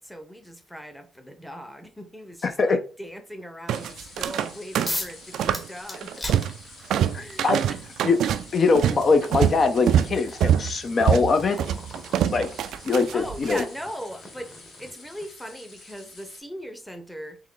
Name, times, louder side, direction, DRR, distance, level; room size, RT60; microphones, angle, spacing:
voice 1, 0.0-6.3 7.2-7.8 13.1-14.5 14.8-17.4, equal, ahead, 0.8 m, -39 dB
voice 2, 2.4-2.8 7.1-7.6 8.0-8.2 8.5-11.6 12.3-12.5 12.8-13.6, left 4 dB, 45° left, 0.5 m, -22 dB
sound 1, 3.7-16.4, left 3 dB, 70° left, 2.0 m, -48 dB
sound 2, 3.7-4.5 4.8-5.7 5.9-6.6 6.9-13.6, right 10 dB, 75° right, 0.3 m, -24 dB
sound 3, 4.9-5.2 5.5-7.1 8.2-8.3 8.8-15.5, left 1 dB, 25° left, 1.2 m, -39 dB
3.7 x 3.1 x 3.7 m
cardioid pair, 90°, 0 cm